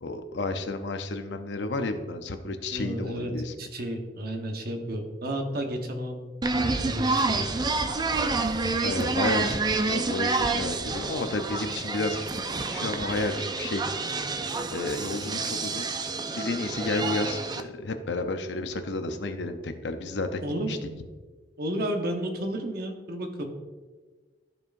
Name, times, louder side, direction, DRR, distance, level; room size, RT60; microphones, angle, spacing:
voice 1, 0.0-3.5 8.8-12.2 12.7-13.8 14.7-15.9 16.3-20.8, left 2 dB, 75° left, 8 dB, 0.7 m, -31 dB
voice 2, 2.7-6.2 6.5-7.5 20.4-21.0 21.6-23.4, right 1 dB, 60° right, 3 dB, 1.1 m, -32 dB
sound 1, 6.4-17.6, right 3 dB, 25° right, 0.4 m, -28 dB
13.5 x 4.6 x 2.6 m, 1.4 s
head